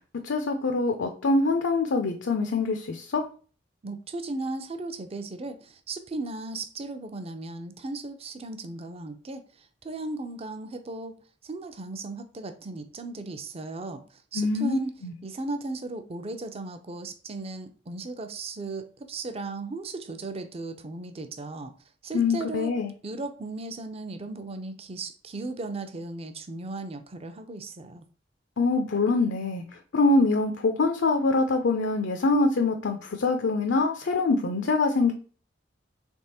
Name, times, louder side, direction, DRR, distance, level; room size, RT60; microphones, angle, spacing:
voice 1, 0.2-3.2 14.3-15.1 22.1-22.9 28.6-29.6 29.9-35.1, left 3 dB, 80° left, 0.5 m, -24 dB
voice 2, 3.8-11.1 11.4-14.0 14.3-14.9 15.2-21.7 22.0-22.8 23.0-28.1, right 2 dB, 35° right, 0.5 m, -36 dB
3.5 x 3.3 x 4.2 m
head